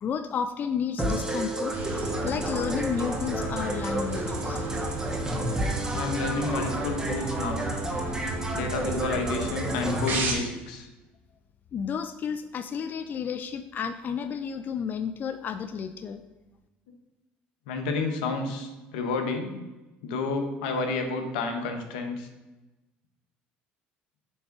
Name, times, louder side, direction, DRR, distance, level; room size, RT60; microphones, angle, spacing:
voice 1, 0.0-1.7 2.2-4.7 11.7-16.2, left 7 dB, 40° left, 10 dB, 0.4 m, -32 dB
sound 1, 1.0-10.1, right 1 dB, 15° right, 1.7 m, -31 dB
sound 2, 1.7-10.3, right 1 dB, 50° right, 2.3 m, -33 dB
voice 2, 5.9-7.6 8.5-10.9 17.7-19.6 20.0-22.3, left 3 dB, 90° left, 5 dB, 1.1 m, -30 dB
7.8 x 3.7 x 6.0 m, 1.1 s
supercardioid pair, 90°, 5 cm